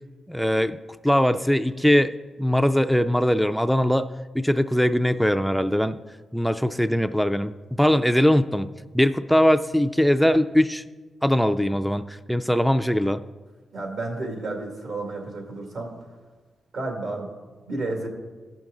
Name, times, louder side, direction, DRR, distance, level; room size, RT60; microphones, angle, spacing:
voice 1, 0.3-0.8 1.0-2.1 2.4-6.0 6.3-8.7 8.9-10.8 11.2-13.2, equal, ahead, 9 dB, 0.3 m, -21 dB
voice 2, 13.7-16.0 16.7-17.3 17.7-18.1, right 2 dB, 75° right, 1 dB, 2.2 m, -31 dB
15.5 x 6.0 x 3.8 m, 1.3 s
cardioid pair, 75°, 0 cm